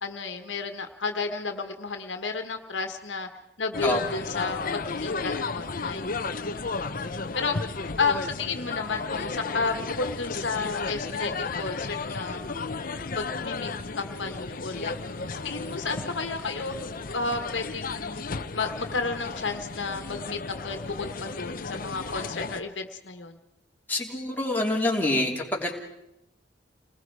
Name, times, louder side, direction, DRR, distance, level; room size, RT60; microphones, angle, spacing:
voice 1, 0.0-3.3 3.6-6.1 7.3-7.6 8.0-12.4 13.1-13.7 14.0-16.7 17.1-18.3 18.5-20.4 20.6-23.4, left 4 dB, 85° left, 6 dB, 1.6 m, -32 dB
sound 1, 3.7-22.6, left 4 dB, 50° left, 0.9 m, -34 dB
voice 2, 23.9-25.7, left 1 dB, 10° left, -2 dB, 3.2 m, -26 dB
29.5 x 20.0 x 4.8 m, 0.84 s
head